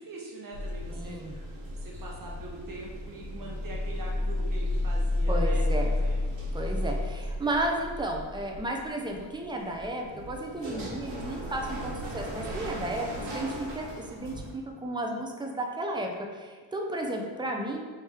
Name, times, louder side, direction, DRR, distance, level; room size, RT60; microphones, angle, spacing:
voice 1, 0.0-6.5 7.4-7.6, right 2 dB, 45° right, -2 dB, 0.7 m, -43 dB
sound 1, 0.5-14.5, left 1 dB, 90° right, 1.4 m, -32 dB
voice 2, 0.9-1.4 5.3-6.0 6.5-17.8, right 1 dB, 10° right, 1 dB, 0.3 m, -33 dB
3.7 x 3.2 x 4.1 m, 1.5 s
wide cardioid pair, 150°, 45 cm